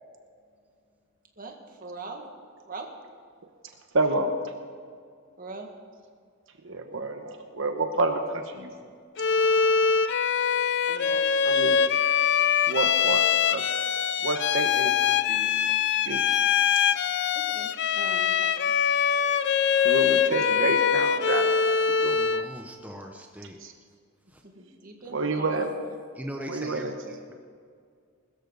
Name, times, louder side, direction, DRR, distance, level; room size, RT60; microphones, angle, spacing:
voice 1, 1.4-2.2 2.7-2.9 5.4-5.7 10.9-11.4 17.5-18.7 24.6-25.8, right 3 dB, 40° right, 2 dB, 2.0 m, -41 dB
voice 2, 3.9-4.3 6.6-8.7 11.4-11.8 12.7-13.8 14.2-15.5 16.0-16.2 19.8-22.2 23.6-23.7 25.1-25.7 26.5-26.9, right 2 dB, 65° right, 5 dB, 1.1 m, -29 dB
Bowed string instrument, 9.2-22.5, left 7 dB, 55° left, 0.6 m, -23 dB
voice 3, 22.1-23.6 24.3-24.4 26.1-27.3, equal, 5° right, 2 dB, 0.8 m, -40 dB
21.0 x 13.5 x 4.0 m, 2.1 s
head